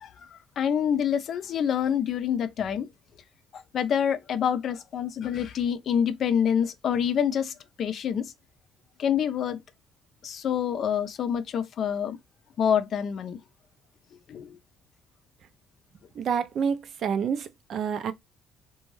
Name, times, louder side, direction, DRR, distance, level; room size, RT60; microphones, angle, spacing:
voice 1, 0.0-2.9 3.5-8.3 9.0-9.6 10.2-12.2 12.6-13.4 14.3-14.6, left 8 dB, 60° left, 0.4 m, -27 dB
voice 2, 16.2-18.1, right 7 dB, 60° right, 0.5 m, -28 dB
2.5 x 2.2 x 3.1 m
supercardioid pair, 80°, 0 cm